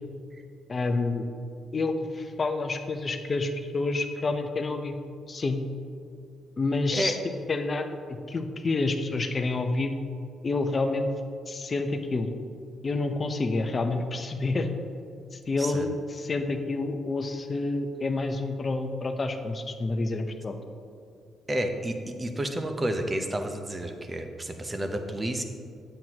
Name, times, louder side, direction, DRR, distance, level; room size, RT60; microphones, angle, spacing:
voice 1, 0.7-1.3 1.7-5.0 5.3-5.6 6.6-7.2 7.5-9.9 10.4-11.1 11.5-12.3 12.8-14.7 15.3-20.5, left 3 dB, 35° left, 6 dB, 0.7 m, -28 dB
voice 2, 21.5-25.4, right 1 dB, 25° right, 6 dB, 0.8 m, -30 dB
9.0 x 7.8 x 2.9 m, 2.4 s
cardioid pair, 90°, 0 cm